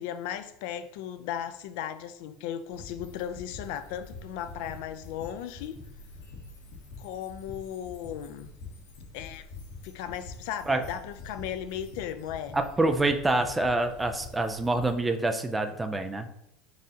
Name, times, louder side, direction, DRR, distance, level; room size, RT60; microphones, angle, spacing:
voice 1, 0.0-5.8 7.0-8.5 9.1-9.5 9.8-12.6, left 10 dB, 65° left, 10 dB, 0.4 m, -36 dB
sound 1, 2.7-15.0, left 3 dB, 80° left, 1.3 m, -46 dB
voice 2, 12.5-16.3, right 2 dB, 10° right, 7 dB, 0.3 m, -26 dB
4.8 x 3.9 x 2.8 m, 0.77 s
cardioid pair, 165°, 0 cm